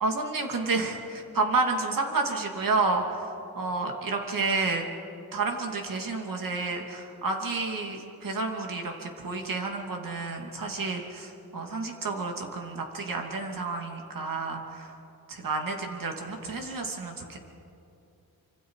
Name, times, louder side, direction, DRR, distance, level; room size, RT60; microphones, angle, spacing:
voice 1, 0.0-3.3 3.5-4.8 5.3-14.9 15.3-17.4, right 3 dB, 60° right, 2 dB, 2.8 m, -30 dB
27.0 x 25.5 x 4.9 m, 2.7 s
wide cardioid pair, 120°, 37 cm